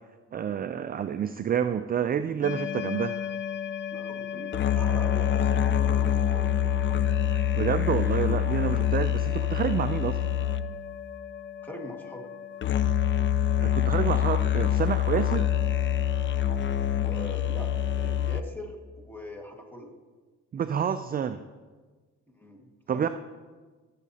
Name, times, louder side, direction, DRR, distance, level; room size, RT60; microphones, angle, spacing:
voice 1, 0.3-3.2 7.3-10.3 13.6-15.5 20.5-21.4 22.9-23.1, right 8 dB, 30° right, 10 dB, 0.4 m, -28 dB
sound 1, 2.4-18.4, left 10 dB, 40° left, 0.5 m, -26 dB
voice 2, 3.9-6.7 8.0-8.4 11.6-12.3 17.0-17.7 18.0-19.9 22.4-23.1, left 1 dB, 5° left, 1 dB, 1.7 m, -42 dB
16.5 x 7.3 x 2.8 m, 1.4 s
cardioid pair, 90°, 30 cm